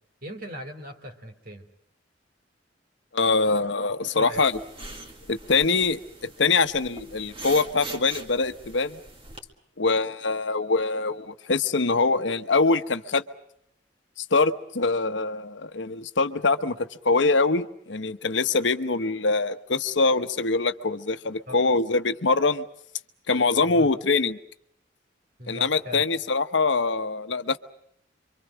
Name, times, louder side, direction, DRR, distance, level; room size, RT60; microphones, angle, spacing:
voice 1, 0.2-1.7 4.2-4.4 21.5-21.6 23.6-23.9 25.4-26.0, equal, 55° right, 7 dB, 2.8 m, -39 dB
voice 2, 3.1-4.5 5.3-9.0 9.8-13.2 14.2-16.8 17.0-22.6 23.3-24.4 25.5-27.6, left 3 dB, 85° left, 11 dB, 1.0 m, -24 dB
sound 1, 4.3-9.4, right 2 dB, 30° right, 2.5 m, -42 dB
27.5 x 24.5 x 6.3 m, 0.73 s
head